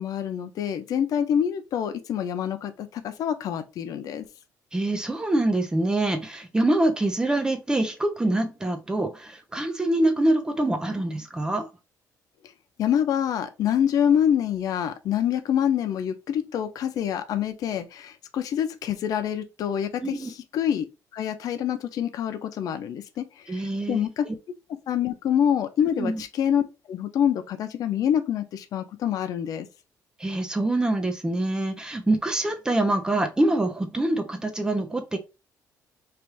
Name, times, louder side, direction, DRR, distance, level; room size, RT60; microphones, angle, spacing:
voice 1, 0.0-4.3 12.8-20.8 21.1-23.6 23.9-24.3 24.9-26.6 26.9-29.7, left 9 dB, 65° left, 0.6 m, -26 dB
voice 2, 4.7-11.7 20.0-20.3 23.5-24.3 26.0-26.2 30.2-35.2, right 1 dB, 10° right, 0.8 m, -25 dB
3.4 x 2.5 x 4.5 m
cardioid pair, 115°, 7 cm